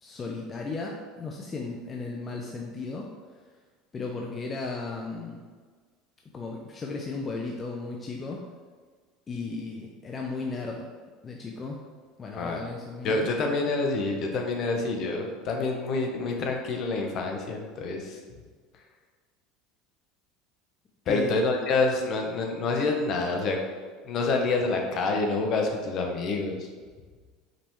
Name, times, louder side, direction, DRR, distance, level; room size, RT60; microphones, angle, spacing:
voice 1, 0.0-3.0 3.9-5.4 6.3-8.4 9.3-10.8 11.2-11.8 12.2-13.3 21.1-21.4, left 3 dB, 30° left, 0 dB, 0.5 m, -35 dB
voice 2, 13.0-18.2 21.1-23.6 24.0-26.7, left 3 dB, 50° left, 2 dB, 0.8 m, -27 dB
5.0 x 3.4 x 3.0 m, 1.5 s
supercardioid pair, 105°, 0 cm